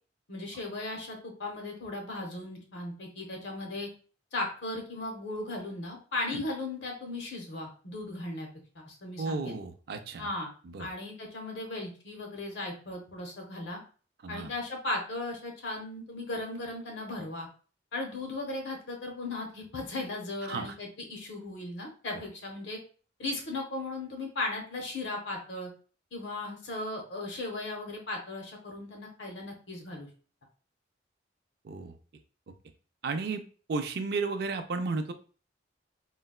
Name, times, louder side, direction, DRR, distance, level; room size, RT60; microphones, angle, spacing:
voice 1, 0.3-3.9 4.3-8.5 8.7-9.6 10.2-10.5 10.8-13.8 14.3-17.5 17.9-22.8 23.2-25.7 26.1-30.1, left 2 dB, 75° left, 2 dB, 0.8 m, -37 dB
voice 2, 9.2-10.3 10.6-10.9 14.2-14.5 20.4-20.7 31.6-31.9 33.0-35.1, right 4 dB, 60° right, 8 dB, 0.4 m, -33 dB
3.8 x 2.2 x 2.3 m, 0.39 s
head